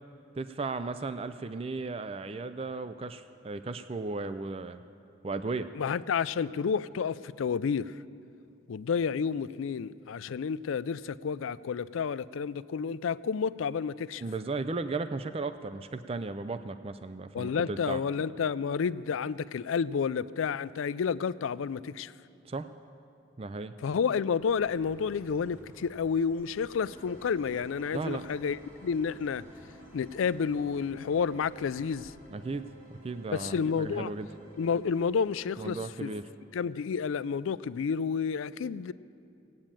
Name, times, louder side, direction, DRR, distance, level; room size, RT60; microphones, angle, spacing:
voice 1, 0.4-4.8 5.2-5.7 14.2-18.0 22.5-22.7 23.4-23.7 27.9-28.3 32.3-34.3 35.6-36.3, right 3 dB, 30° right, 11 dB, 0.4 m, -35 dB
voice 2, 5.7-7.9 8.7-14.2 17.3-22.1 23.8-29.4 29.9-32.1 33.3-34.1 34.6-36.1 36.5-38.9, left 6 dB, 80° left, 17 dB, 0.4 m, -30 dB
Chirp tweet, 24.3-32.1, equal, 10° right, 1.6 m, -56 dB
sound 1, 26.8-35.5, right 1 dB, 70° right, 3.3 m, -55 dB
17.0 x 8.6 x 9.0 m, 2.6 s
head